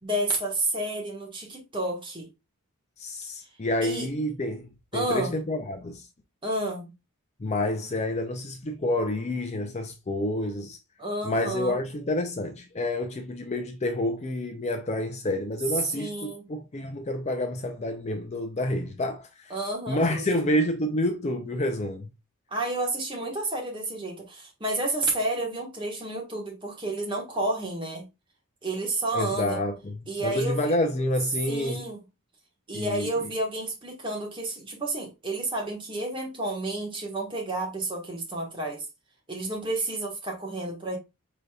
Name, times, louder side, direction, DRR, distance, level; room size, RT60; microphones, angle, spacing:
voice 1, 0.0-2.3 3.8-4.1 4.9-5.3 6.4-6.9 11.0-11.8 15.9-16.4 19.5-20.2 22.5-28.1 28.6-29.6 30.1-30.7 31.5-32.0 32.7-38.8 39.3-41.0, right 2 dB, 20° right, 1.4 m, -30 dB
voice 2, 3.0-6.1 7.4-10.8 11.2-19.5 19.9-22.1 29.1-29.9 30.2-31.9 32.7-33.1, left 1 dB, 30° left, 0.5 m, -28 dB
5.0 x 3.9 x 2.3 m
head